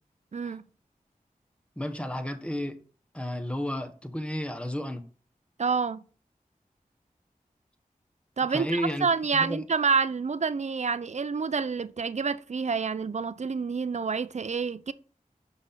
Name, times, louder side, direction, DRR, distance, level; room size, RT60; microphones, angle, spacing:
voice 1, 0.3-0.6 5.6-6.0 8.4-14.9, right 5 dB, 50° right, 0.5 m, -28 dB
voice 2, 1.8-2.8 3.1-5.0 8.5-9.1 9.3-9.6, equal, 10° left, 1.0 m, -32 dB
5.9 x 5.8 x 4.0 m
wide cardioid pair, 45°, 15 cm